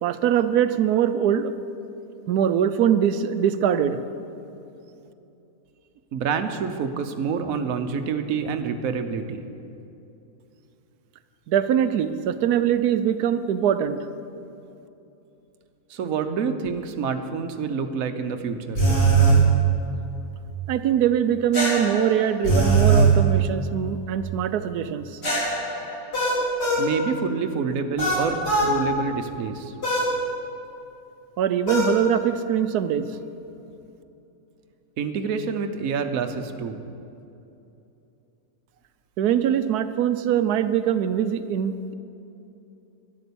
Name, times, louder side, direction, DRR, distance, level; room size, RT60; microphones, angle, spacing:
voice 1, 0.0-1.5 2.3-4.0 11.5-14.0 20.7-25.2 31.4-33.1 39.2-41.9, right 9 dB, 90° right, 11 dB, 1.2 m, -22 dB
voice 2, 6.1-9.4 15.9-18.8 26.8-29.7 35.0-36.8, right 5 dB, 65° right, 7 dB, 1.2 m, -27 dB
sound 1, 18.8-19.4 21.5-23.1 25.2-26.9 28.0-28.7 29.8-30.1 31.7-31.9, right 3 dB, 40° left, 3.7 m, -20 dB
12.5 x 11.0 x 7.0 m, 2.8 s
omnidirectional pair, 1.6 m